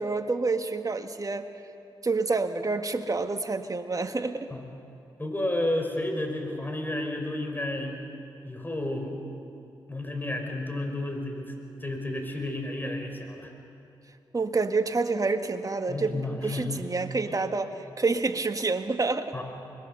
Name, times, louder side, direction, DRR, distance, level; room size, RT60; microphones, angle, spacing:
voice 1, 0.0-1.5 2.0-4.5 14.3-16.2 16.4-19.3, right 3 dB, 35° right, 7 dB, 1.7 m, -28 dB
voice 2, 5.2-7.9 8.4-9.2 9.9-11.5 11.8-13.5 15.9-16.9 17.3-17.4 19.3-19.4, left 1 dB, 20° left, 3 dB, 5.4 m, -31 dB
25.5 x 21.5 x 6.9 m, 2.8 s
supercardioid pair, 40°, 10 cm